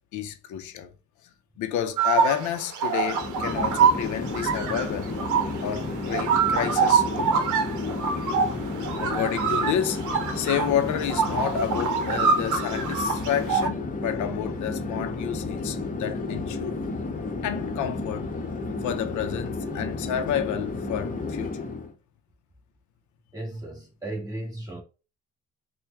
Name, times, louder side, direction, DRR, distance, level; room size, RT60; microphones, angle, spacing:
voice 1, 0.1-0.9 1.6-5.1 5.6-7.5 9.0-10.1 10.3-16.7 17.4-18.3 18.8-21.6, left 9 dB, 75° left, 0.6 m, -30 dB
sound 1, 2.0-13.7, right 6 dB, 85° right, 0.7 m, -25 dB
Chatter / Fixed-wing aircraft airplane, 3.0-21.9, left 3 dB, 25° left, 0.9 m, -32 dB
voice 2, 23.3-24.8, right 1 dB, 10° right, 1.5 m, -35 dB
4.3 x 2.2 x 3.5 m
cardioid pair, 90°, 30 cm